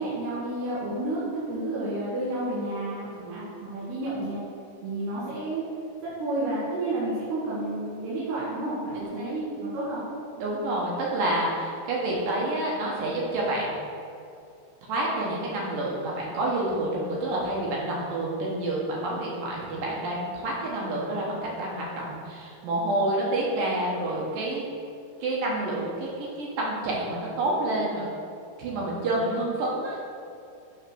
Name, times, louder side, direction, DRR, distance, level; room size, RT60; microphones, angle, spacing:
voice 1, 0.0-4.4 4.8-5.6 6.2-10.0, right 2 dB, 85° right, -9 dB, 3.7 m, -30 dB
voice 2, 9.0-9.4 10.4-13.7 14.9-24.6 25.2-28.1 28.6-30.0, right 1 dB, 70° right, -4 dB, 2.5 m, -28 dB
8.3 x 3.6 x 6.0 m, 2.5 s
omnidirectional pair, 4.6 m